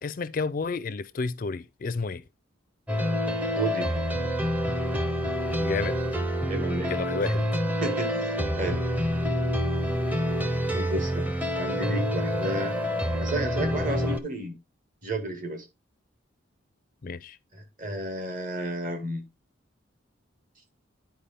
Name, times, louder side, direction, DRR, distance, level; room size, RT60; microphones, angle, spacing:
voice 1, 0.0-2.2 5.6-5.9 6.9-7.4 17.0-17.4, left 4 dB, 40° left, 0.4 m, -31 dB
sound 1, 2.9-14.2, equal, 10° right, 0.7 m, -27 dB
voice 2, 3.5-3.9 6.5-6.9 7.8-8.8 10.7-11.3 11.6-12.8 13.2-14.5 15.0-15.6 17.5-19.2, right 1 dB, 40° right, 1.7 m, -32 dB
10.0 x 4.7 x 3.4 m
head